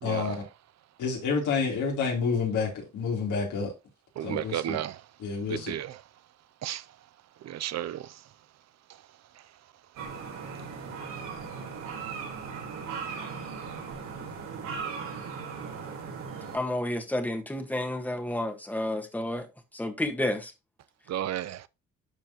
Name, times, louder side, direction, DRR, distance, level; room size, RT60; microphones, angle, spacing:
voice 1, 0.0-0.4 1.0-3.7 4.2-4.8 5.2-5.7, left 5 dB, 80° left, 3.8 m, -29 dB
voice 2, 4.2-4.9 5.7-5.9 6.6-6.8 7.5-8.0 21.1-21.6, right 11 dB, 60° right, 0.6 m, -32 dB
sound 1, 10.0-16.6, right 5 dB, 90° right, 4.2 m, -38 dB
voice 3, 16.5-19.5 19.7-20.5, left 1 dB, 5° left, 1.6 m, -30 dB
12.0 x 4.5 x 3.0 m
cardioid pair, 90°, 30 cm